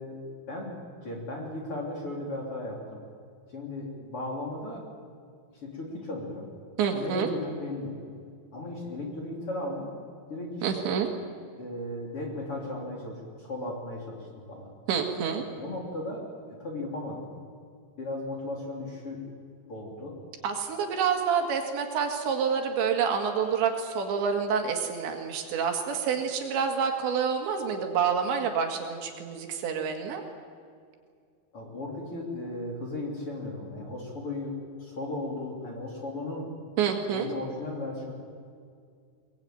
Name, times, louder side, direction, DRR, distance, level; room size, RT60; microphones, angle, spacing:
voice 1, 0.0-3.0 3.5-4.9 5.6-6.5 6.9-8.0 8.5-9.9 10.3-11.0 11.6-14.7 15.5-16.2 16.6-17.3 18.0-19.3 19.7-20.2 31.5-36.5 37.1-38.1, left 2 dB, 30° left, -1 dB, 3.6 m, -36 dB
voice 2, 6.8-7.3 10.6-11.1 14.9-15.5 20.4-30.2 36.8-37.3, right 6 dB, 75° right, 4 dB, 4.1 m, -28 dB
22.5 x 20.5 x 9.3 m, 2.2 s
omnidirectional pair, 5.4 m